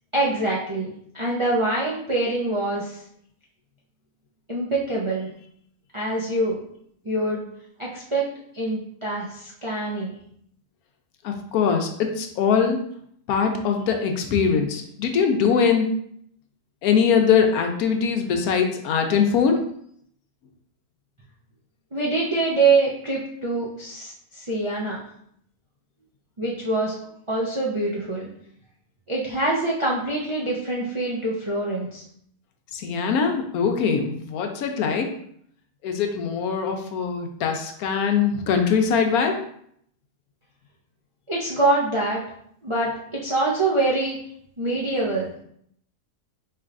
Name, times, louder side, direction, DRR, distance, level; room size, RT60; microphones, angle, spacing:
voice 1, 0.1-3.0 4.5-5.3 5.9-6.6 7.0-7.4 7.8-8.3 8.5-10.1 21.9-25.0 26.4-28.3 29.1-32.0 41.3-42.2 42.6-44.2 44.6-45.3, right 2 dB, 50° right, -5 dB, 0.3 m, -25 dB
voice 2, 11.2-12.8 13.3-15.9 16.8-19.6 32.7-35.1 35.8-39.4, left 6 dB, 75° left, 4 dB, 1.0 m, -22 dB
4.6 x 3.3 x 2.5 m, 0.68 s
omnidirectional pair, 1.6 m